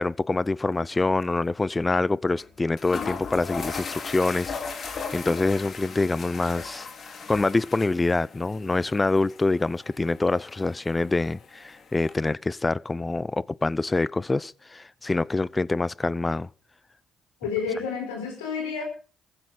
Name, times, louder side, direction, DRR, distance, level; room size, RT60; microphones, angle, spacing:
voice 1, 0.0-6.9 7.3-16.5, left 3 dB, 25° left, 0.6 m, -25 dB
sound 1, 0.7-1.0 1.2-1.3 2.4-2.5 2.8-12.1, left 5 dB, 50° left, 2.7 m, -38 dB
voice 2, 17.4-18.8, left 6 dB, 85° left, 4.6 m, -30 dB
15.0 x 14.5 x 5.1 m
hypercardioid pair, 50°, 0 cm